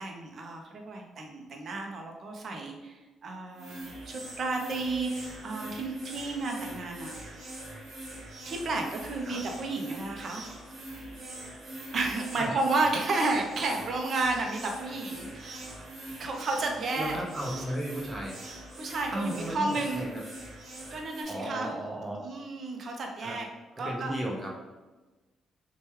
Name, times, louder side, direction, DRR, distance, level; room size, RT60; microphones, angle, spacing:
voice 1, 0.0-7.3 8.5-10.4 11.9-15.7 16.2-17.2 18.8-20.0 20.9-21.7 22.2-23.5 23.8-24.1, right 3 dB, 55° right, 2 dB, 0.5 m, -32 dB
sound 1, 3.5-21.2, right 1 dB, 70° right, 1.0 m, -43 dB
voice 2, 17.0-18.4 19.1-20.2 21.3-22.2 23.2-23.4 23.8-24.5, right 1 dB, 25° right, -2 dB, 0.8 m, -34 dB
3.1 x 2.2 x 3.0 m, 1.2 s
cardioid pair, 90°, 0 cm